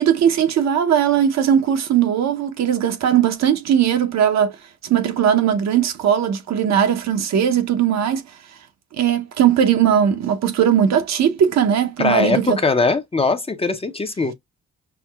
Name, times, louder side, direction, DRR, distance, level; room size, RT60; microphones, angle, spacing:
voice 1, 0.0-4.5 4.8-8.2 9.0-12.6, right 9 dB, 60° right, 0.7 m, -18 dB
voice 2, 12.0-14.3, left 3 dB, 20° left, 0.5 m, -20 dB
5.7 x 2.1 x 2.2 m
cardioid pair, 90°, 30 cm